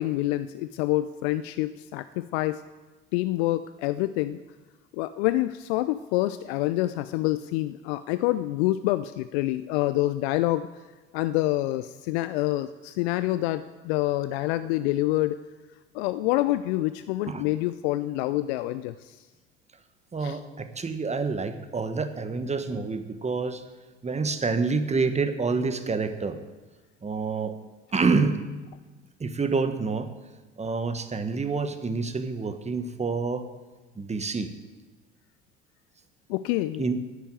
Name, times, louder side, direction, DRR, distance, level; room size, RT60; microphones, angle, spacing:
voice 1, 0.0-2.6 3.1-4.4 4.9-10.7 11.1-15.4 15.9-19.2 20.2-20.4 36.3-36.8, left 16 dB, 65° left, 13 dB, 0.5 m, -27 dB
voice 2, 20.1-23.6 24.0-26.4 27.0-27.5 27.9-28.4 29.2-30.1 30.6-33.5 33.9-34.5 36.8-37.0, right 4 dB, 20° right, 9 dB, 1.3 m, -27 dB
10.5 x 8.2 x 9.0 m, 1.2 s
hypercardioid pair, 65°, 34 cm